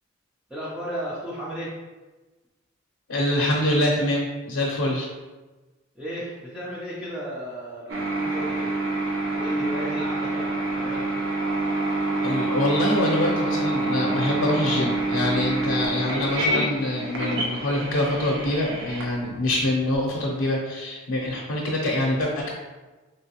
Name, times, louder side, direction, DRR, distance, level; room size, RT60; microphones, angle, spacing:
voice 1, 0.5-1.7 6.0-8.7 9.3-11.1, equal, 5° right, -8 dB, 0.5 m, -34 dB
voice 2, 3.1-5.1 12.2-22.5, left 1 dB, 85° left, -3 dB, 0.6 m, -25 dB
sound 1, 7.9-20.0, right 2 dB, 60° right, 0.5 m, -27 dB
3.3 x 3.0 x 2.8 m, 1.2 s
head